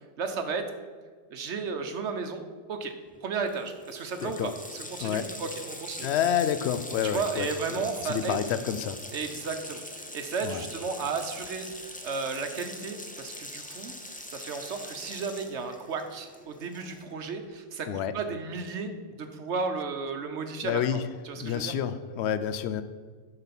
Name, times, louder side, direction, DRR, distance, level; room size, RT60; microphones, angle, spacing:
voice 1, 0.2-0.6 1.3-2.4 2.7-2.9 3.2-6.1 7.0-8.4 9.1-11.7 12.0-13.9 14.3-17.9 18.1-18.9 19.2-21.7, right 5 dB, 65° right, 6 dB, 1.2 m, -34 dB
Water tap faucet, 3.1-3.2 3.4-17.2, left 1 dB, 10° left, 0.5 m, -42 dB
voice 2, 4.2-4.5 5.0-5.3 6.0-9.0 10.4-10.7 17.9-18.1 20.6-21.0 21.4-22.8, left 9 dB, 65° left, 12 dB, 0.8 m, -29 dB
9.0 x 5.7 x 5.9 m, 1.5 s
omnidirectional pair, 1.3 m